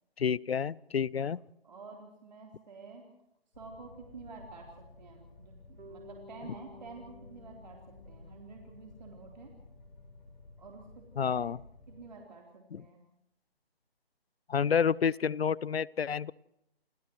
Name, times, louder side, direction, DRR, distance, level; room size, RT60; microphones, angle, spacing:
voice 1, 0.2-1.4 11.2-11.6 12.7-12.8 14.5-16.3, left 7 dB, 80° left, 23 dB, 0.7 m, -29 dB
voice 2, 1.6-3.1 3.6-9.5 10.6-11.4 11.9-13.1, right 4 dB, 45° right, 0 dB, 3.7 m, -50 dB
sound 1, 3.5-12.1, left 2 dB, 45° left, 4.9 m, -54 dB
Bass guitar, 5.8-9.9, left 2 dB, 85° right, 5.6 m, -55 dB
29.0 x 28.5 x 3.1 m, 0.82 s
hypercardioid pair, 170°, 31 cm